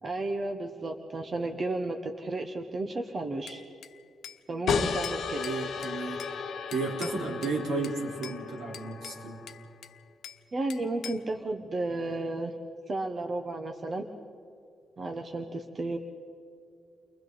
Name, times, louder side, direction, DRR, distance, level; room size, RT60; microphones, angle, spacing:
voice 1, 0.0-3.6 4.5-5.4 10.5-12.5 12.9-14.1 15.0-16.0, right 2 dB, 30° right, 4 dB, 1.1 m, -33 dB
Bell / Glass, 3.5-4.4 4.7-6.4 6.7-7.6 7.8-8.4 8.7-10.4 10.7-11.3, left 9 dB, 80° left, 1.1 m, -45 dB
sound 1, 4.7-9.9, left 5 dB, 60° left, 1.3 m, -34 dB
voice 2, 5.4-6.2 6.7-9.4, right 3 dB, 70° right, -1 dB, 4.1 m, -33 dB
30.0 x 24.0 x 4.1 m, 2.5 s
wide cardioid pair, 170°, 0 cm